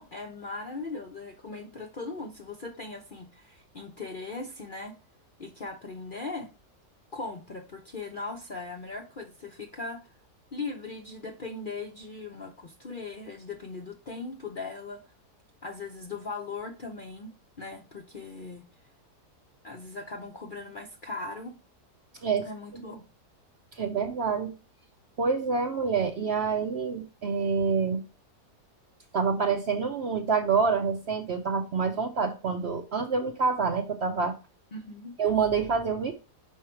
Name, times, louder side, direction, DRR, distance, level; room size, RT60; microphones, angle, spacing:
voice 1, 0.0-5.0 5.4-6.5 7.1-10.1 10.5-15.0 15.6-17.3 17.6-18.6 19.6-21.6 22.4-23.0 34.7-35.2, left 3 dB, 45° left, 0.6 m, -39 dB
voice 2, 23.8-24.5 25.2-28.0 29.1-34.3 35.2-36.1, right 5 dB, 55° right, 0.7 m, -27 dB
5.6 x 4.8 x 4.4 m
omnidirectional pair, 1.7 m